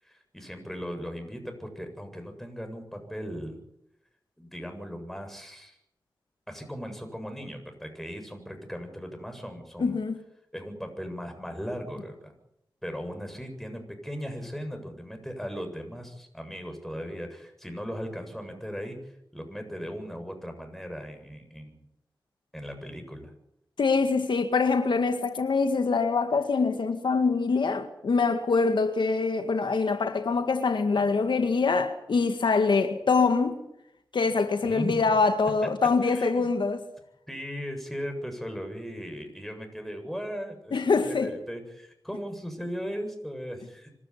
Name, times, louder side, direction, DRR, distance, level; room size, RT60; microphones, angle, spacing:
voice 1, 0.0-3.6 4.4-5.8 6.5-10.0 10.5-12.3 12.8-21.8 22.5-23.3 34.6-35.0 36.0-36.5 37.3-43.9, equal, 5° left, 7.8 m, -38 dB
voice 2, 9.8-10.2 23.8-33.6 34.1-36.8 40.7-41.3, left 4 dB, 80° left, 1.9 m, -24 dB
26.0 x 13.0 x 10.0 m
cardioid pair, 50°, 8 cm